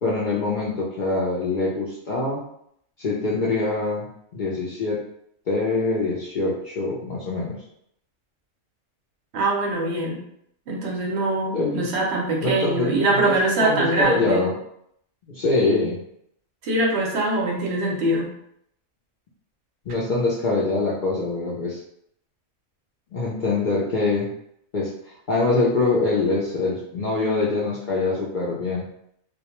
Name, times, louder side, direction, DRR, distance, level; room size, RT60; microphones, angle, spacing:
voice 1, 0.0-2.4 3.0-4.1 4.3-5.0 5.5-7.5 11.5-11.8 12.4-13.0 13.2-14.5 15.3-16.0 19.9-21.8 23.1-24.3 24.7-24.9 25.3-28.8, left 3 dB, 60° left, -5 dB, 0.5 m, -24 dB
voice 2, 9.3-10.2 10.7-14.4 16.6-18.3, right 2 dB, 70° right, -1 dB, 0.8 m, -23 dB
2.2 x 2.1 x 2.9 m, 0.71 s
omnidirectional pair, 1.3 m